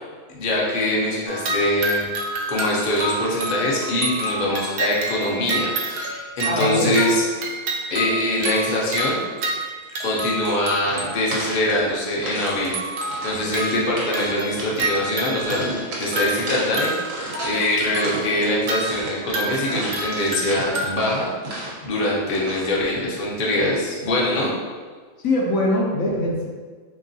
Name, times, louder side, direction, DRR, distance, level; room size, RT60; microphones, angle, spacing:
voice 1, 0.3-2.0 2.5-7.2 7.9-9.2 10.0-12.8 13.2-16.9 17.4-21.3 21.8-24.5, left 1 dB, 45° left, -4 dB, 0.7 m, -23 dB
sound 1, 1.3-11.5 12.4-20.9, right 2 dB, 85° right, 0.5 m, -29 dB
voice 2, 6.4-7.0 25.2-26.5, left 1 dB, 70° left, -3 dB, 1.0 m, -22 dB
sound 2, 10.8-12.5 12.8-13.5 13.8-14.2 14.6-15.0 15.5-17.6 17.9-21.9 22.3-22.7, right 1 dB, 60° right, 1.2 m, -33 dB
3.4 x 2.9 x 2.6 m, 1.5 s
omnidirectional pair, 1.6 m